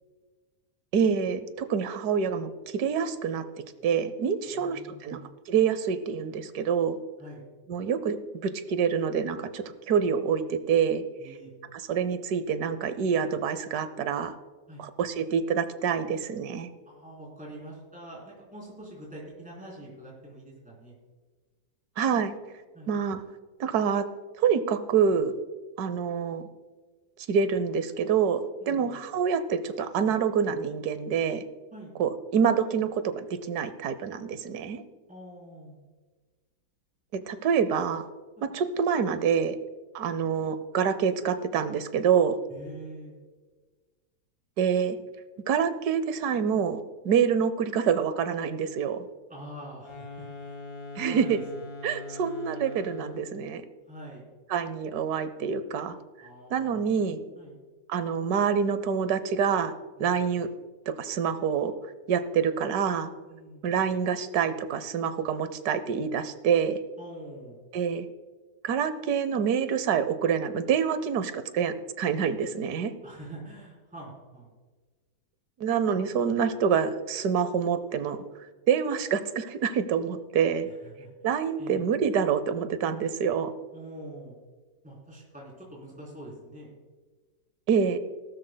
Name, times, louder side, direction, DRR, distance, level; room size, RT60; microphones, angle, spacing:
voice 1, 0.9-3.4 3.8-5.2 5.5-7.0 7.7-11.0 11.7-14.4 14.8-16.7 22.0-22.3 22.9-23.2 23.6-24.0 24.4-25.3 25.8-26.4 27.3-31.4 32.0-34.8 37.1-38.1 38.4-39.6 39.9-42.4 44.6-45.0 45.5-46.8 47.0-49.1 51.0-51.4 51.8-53.6 54.5-56.0 56.5-57.2 57.9-59.7 60.0-60.5 60.9-61.7 62.1-63.1 63.6-66.8 67.7-68.1 68.6-72.9 75.6-78.2 78.7-80.7 81.2-83.5 87.7-88.0, right 7 dB, 70° right, 12 dB, 1.2 m, -26 dB
voice 2, 4.5-5.3 7.2-7.4 11.2-11.5 14.7-14.8 16.9-20.9 22.7-22.9 28.6-29.0 31.7-31.9 35.1-35.8 38.4-38.5 42.5-43.2 49.3-50.6 51.0-51.4 53.9-54.3 56.2-56.9 57.4-57.5 63.3-63.7 67.0-67.6 73.0-74.5 80.7-81.1 81.6-81.8 83.7-84.4 84.8-86.7, right 1 dB, 5° right, -4 dB, 3.5 m, -45 dB
sound 1, 49.7-53.4, left 3 dB, 35° left, 1.9 m, -42 dB
18.5 x 12.5 x 2.2 m, 1.4 s
omnidirectional pair, 1.9 m